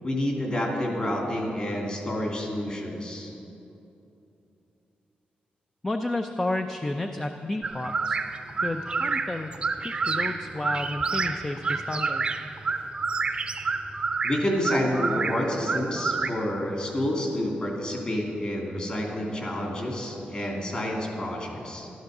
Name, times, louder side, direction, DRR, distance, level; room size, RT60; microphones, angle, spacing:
voice 1, 0.0-3.3 14.2-21.9, left 1 dB, 35° left, -1 dB, 2.8 m, -29 dB
voice 2, 5.8-8.2 8.6-12.3, left 2 dB, 15° left, 5 dB, 0.5 m, -31 dB
sound 1, 7.6-16.3, right 4 dB, 35° right, 0.7 m, -29 dB
13.0 x 12.5 x 6.6 m, 2.9 s
wide cardioid pair, 160°, 3 cm